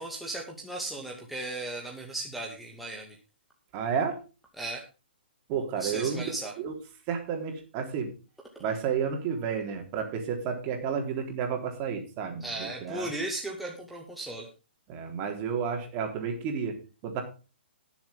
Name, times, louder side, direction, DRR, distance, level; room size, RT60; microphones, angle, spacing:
voice 1, 0.0-3.2 4.6-4.8 5.8-6.5 12.4-14.5, right 2 dB, ahead, -2 dB, 2.2 m, -36 dB
voice 2, 3.7-4.2 5.5-6.2 6.6-6.7 7.1-8.1 8.6-13.1 14.9-16.8 17.0-17.2, right 6 dB, 30° right, 4 dB, 3.6 m, -31 dB
19.5 x 7.4 x 3.7 m, 0.32 s
figure-of-eight pair, 130°, 6 cm